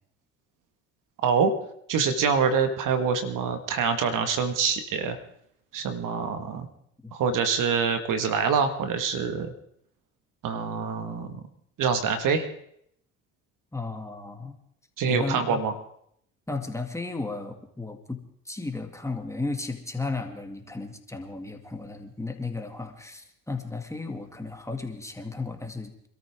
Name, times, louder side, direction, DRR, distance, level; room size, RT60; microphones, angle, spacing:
voice 1, 1.9-5.2 5.7-6.7 7.1-9.5 10.4-11.4 11.8-12.5 15.0-15.7, right 6 dB, 60° right, 8 dB, 1.8 m, -25 dB
voice 2, 13.7-14.6 15.1-15.6 16.5-26.1, left 3 dB, 10° left, 5 dB, 2.3 m, -34 dB
26.0 x 13.5 x 3.7 m, 0.70 s
hypercardioid pair, 70°, 36 cm